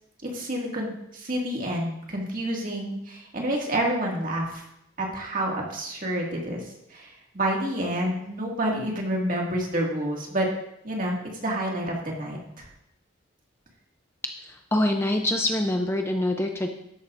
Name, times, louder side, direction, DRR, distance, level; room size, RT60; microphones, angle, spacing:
voice 1, 0.2-4.6 5.0-6.6 6.9-10.5 10.8-12.7, right 1 dB, 40° right, -1 dB, 2.1 m, -29 dB
voice 2, 14.4-16.7, left 1 dB, 10° left, 4 dB, 0.5 m, -25 dB
13.0 x 11.0 x 2.6 m, 0.80 s
head